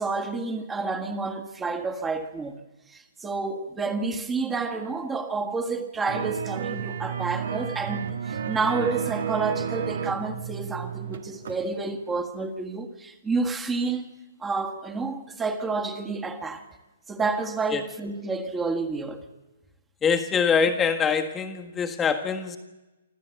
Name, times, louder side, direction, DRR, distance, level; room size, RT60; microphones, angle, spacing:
voice 1, 0.0-2.6 2.9-14.1 14.4-16.6 17.1-19.2, right 4 dB, 10° right, 1.7 m, -29 dB
sound 1, 6.1-11.6 11.9-12.0, right 8 dB, 65° right, 1.7 m, -32 dB
voice 2, 20.0-22.6, left 6 dB, 15° left, 1.5 m, -24 dB
25.0 x 13.5 x 8.0 m
hypercardioid pair, 135°, 0 cm